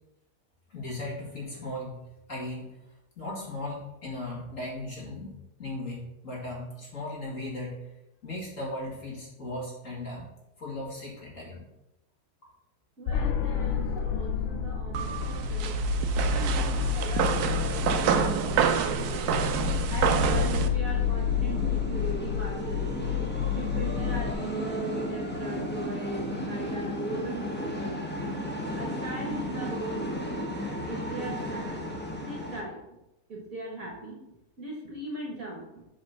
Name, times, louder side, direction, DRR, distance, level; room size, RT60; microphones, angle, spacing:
voice 1, 0.7-2.0 2.3-2.8 3.2-5.3 5.6-7.8 8.2-10.3 10.6-11.6, left 1 dB, 35° left, -4 dB, 2.3 m, -37 dB
voice 2, 13.0-15.8 16.3-19.4 19.9-22.9 23.5-28.1 28.7-30.2 30.5-31.8 32.2-32.8 33.3-34.2 34.6-35.8, right 2 dB, 45° right, -1 dB, 1.4 m, -38 dB
sound 1, 13.1-24.3, left 9 dB, 75° left, 1.4 m, -30 dB
sound 2, 14.9-20.7, right 8 dB, 80° right, 0.8 m, -27 dB
sound 3, 16.3-32.6, left 1 dB, 10° left, 0.7 m, -35 dB
7.4 x 4.1 x 5.9 m, 0.91 s
omnidirectional pair, 2.4 m